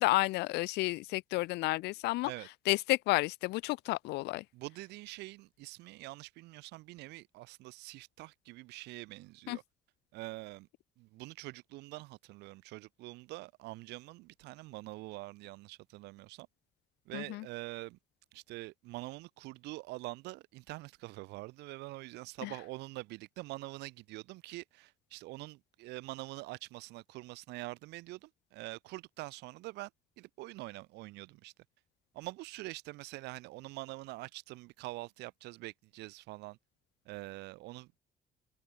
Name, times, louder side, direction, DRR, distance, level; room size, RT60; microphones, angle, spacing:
voice 1, 0.0-2.3 2.7-4.4 9.5-9.6 17.1-17.5 22.4-22.5, left 20 dB, 80° left, 0.5 m, -31 dB
voice 2, 4.5-9.6 10.1-10.7 11.0-16.5 17.1-18.0 18.3-29.9 30.2-31.5 32.1-36.6 37.1-38.0, right 21 dB, 85° right, 0.5 m, -45 dB
cardioid pair, 110°, 17 cm